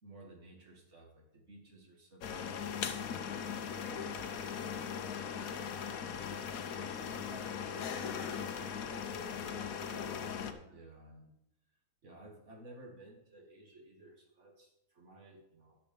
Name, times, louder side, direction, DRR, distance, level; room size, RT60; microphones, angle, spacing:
voice 1, 0.0-2.9 3.4-6.4 6.7-8.6 10.0-11.3 12.0-15.8, right 2 dB, 50° right, 1 dB, 2.4 m, -56 dB
sound 1, 2.2-10.5, left 7 dB, 70° left, 1.2 m, -39 dB
voice 2, 7.1-10.2 10.6-10.8, right 3 dB, 90° right, 6 dB, 1.6 m, -55 dB
11.0 x 6.8 x 5.4 m, 0.82 s
omnidirectional pair, 1.6 m